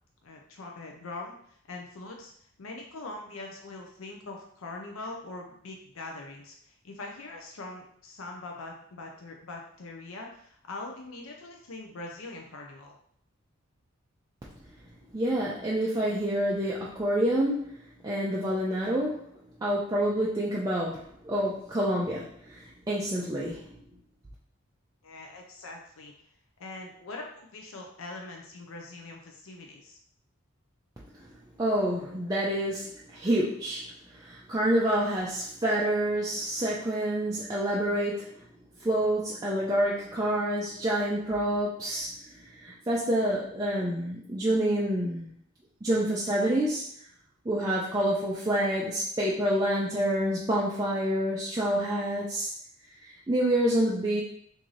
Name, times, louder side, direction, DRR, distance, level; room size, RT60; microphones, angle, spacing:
voice 1, 0.2-2.3 2.6-12.9 25.0-26.1 26.6-27.2 27.5-30.0, left 2 dB, 70° left, 1 dB, 0.5 m, -42 dB
voice 2, 15.1-19.2 19.6-23.6 31.6-38.4 38.8-45.4 45.8-46.9 47.5-52.5 53.0-54.2, right 1 dB, 15° right, -5 dB, 0.4 m, -28 dB
3.8 x 2.6 x 3.1 m, 0.65 s
head